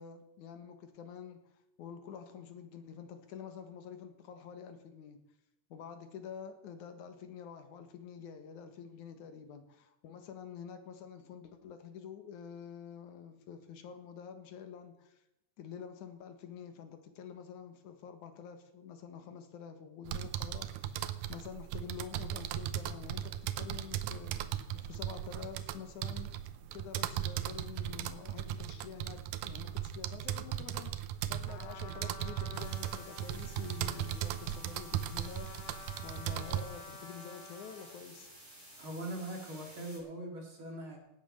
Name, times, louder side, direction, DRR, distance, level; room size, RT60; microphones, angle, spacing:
voice 1, 0.0-1.4 1.8-5.2 5.7-15.2 15.6-26.3 26.7-35.7 36.0-38.3, left 7 dB, 70° left, 8 dB, 2.8 m, -48 dB
sound 1, 20.1-36.6, right 11 dB, 90° right, 2.4 m, -37 dB
Trumpet, 31.5-38.1, left 4 dB, 55° left, 2.7 m, -51 dB
sound 2, 32.5-40.0, right 1 dB, 15° right, 5.0 m, -53 dB
voice 2, 38.8-41.0, right 1 dB, 40° right, 1 dB, 3.7 m, -41 dB
17.5 x 9.0 x 6.5 m, 0.87 s
omnidirectional pair, 3.7 m